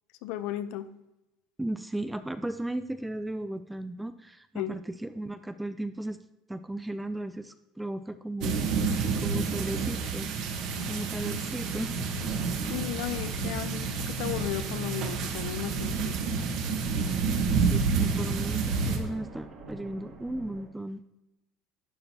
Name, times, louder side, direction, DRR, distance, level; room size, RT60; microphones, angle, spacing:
voice 1, 0.2-0.9 4.5-4.8 10.7-10.9 12.7-16.2, left 12 dB, 55° left, 12 dB, 0.6 m, -35 dB
voice 2, 1.6-6.2 6.5-8.6 9.2-10.3 10.9-12.1 12.6-12.7 17.6-21.0, right 1 dB, 5° right, 11 dB, 0.3 m, -35 dB
sound 1, 8.4-19.0, right 5 dB, 45° right, 1.3 m, -29 dB
sound 2, 11.8-14.1, left 6 dB, 85° left, 1.9 m, -46 dB
sound 3, 12.2-20.7, right 2 dB, 30° right, 1.6 m, -46 dB
11.5 x 9.8 x 2.9 m, 0.95 s
cardioid pair, 175°, 0 cm